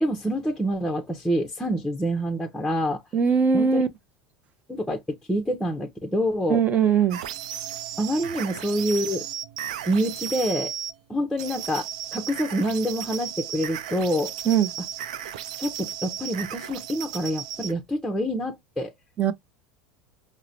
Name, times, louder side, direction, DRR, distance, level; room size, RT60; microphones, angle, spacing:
voice 1, 0.0-3.0 3.5-3.8 4.7-6.6 8.0-9.2 9.9-10.7 11.1-14.3 15.6-18.9, equal, 5° left, 0.7 m, -27 dB
voice 2, 3.1-3.9 6.5-7.2 14.5-14.7 19.2-19.3, right 6 dB, 35° right, 0.7 m, -20 dB
sound 1, 7.1-10.9 11.4-17.7, right 10 dB, 80° right, 0.4 m, -35 dB
4.8 x 2.1 x 2.7 m
hypercardioid pair, 95°, 4 cm